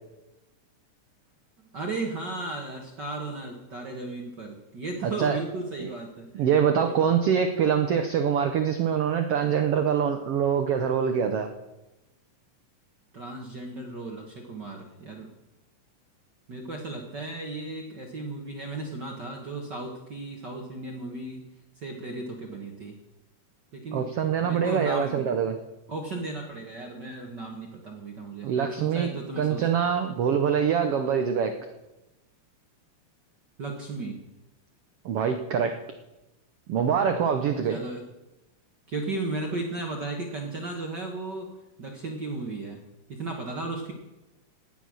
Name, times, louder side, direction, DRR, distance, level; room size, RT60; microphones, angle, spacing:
voice 1, 1.7-6.5 6.8-6.9 13.1-15.3 16.5-21.5 21.8-22.9 23.7-24.1 24.4-25.4 25.9-29.7 33.6-34.2 37.7-38.0 38.9-41.5 41.8-42.8 43.1-43.9, right 2 dB, 45° right, 1 dB, 1.4 m, -35 dB
voice 2, 5.0-5.4 5.8-5.9 6.3-11.5 23.9-25.5 28.4-29.1 29.4-31.5 35.0-35.8 36.7-37.8, right 7 dB, 85° right, 7 dB, 1.3 m, -24 dB
17.5 x 9.4 x 6.3 m, 0.99 s
omnidirectional pair, 3.9 m